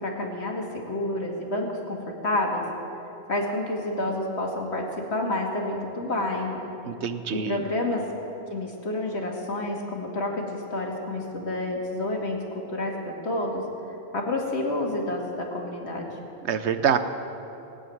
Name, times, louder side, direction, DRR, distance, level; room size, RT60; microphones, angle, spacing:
voice 1, 0.0-2.6 3.3-6.6 7.3-8.1 8.5-12.4 12.7-13.6 14.1-16.1, left 1 dB, 80° left, 0 dB, 2.3 m, -29 dB
voice 2, 6.9-7.6 16.4-17.0, right 8 dB, 90° right, 10 dB, 1.1 m, -25 dB
18.5 x 8.0 x 9.2 m, 2.9 s
omnidirectional pair, 1.1 m